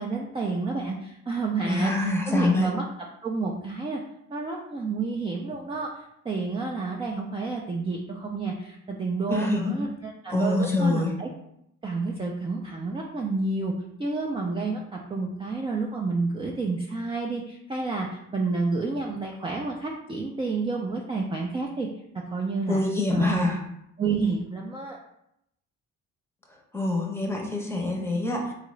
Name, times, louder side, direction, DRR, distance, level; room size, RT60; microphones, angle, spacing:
voice 1, 0.0-1.9 2.3-2.8 3.2-4.0 4.3-11.3 11.8-13.7 14.0-18.1 18.3-21.9 22.1-22.8 23.1-23.5 24.0-25.0, right 3 dB, 20° right, -1 dB, 0.4 m, -30 dB
voice 2, 1.6-2.7 9.3-9.8 10.3-11.2 22.7-23.6 26.5-28.5, left 2 dB, 10° left, 0 dB, 0.8 m, -25 dB
3.7 x 2.4 x 3.1 m, 0.77 s
cardioid pair, 90°, 30 cm